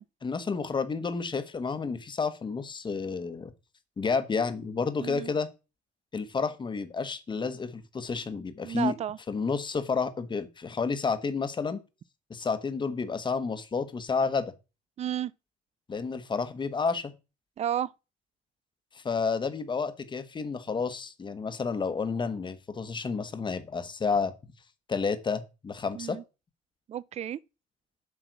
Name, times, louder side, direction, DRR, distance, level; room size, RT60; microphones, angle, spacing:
voice 1, 0.2-3.5 4.0-5.5 6.1-8.9 9.3-11.8 12.3-14.5 15.9-17.1 18.9-24.3 24.9-26.2, left 5 dB, 25° left, 1.2 m, -30 dB
voice 2, 5.0-5.3 8.6-9.2 15.0-15.3 17.6-17.9 25.9-26.2 26.9-27.4, right 10 dB, 40° right, 0.5 m, -32 dB
7.8 x 6.0 x 4.7 m
cardioid pair, 110°, 17 cm